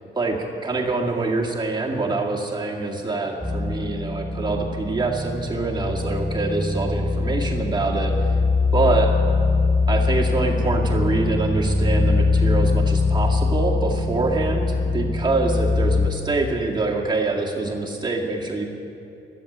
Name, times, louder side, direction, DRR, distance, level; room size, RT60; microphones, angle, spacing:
voice 1, 0.2-8.3 8.7-9.1 9.9-18.6, right 3 dB, 20° right, -1 dB, 2.0 m, -25 dB
sound 1, 3.4-16.1, left 3 dB, 5° left, 4.3 m, -22 dB
13.5 x 12.0 x 8.0 m, 3.0 s
cardioid pair, 90°, 20 cm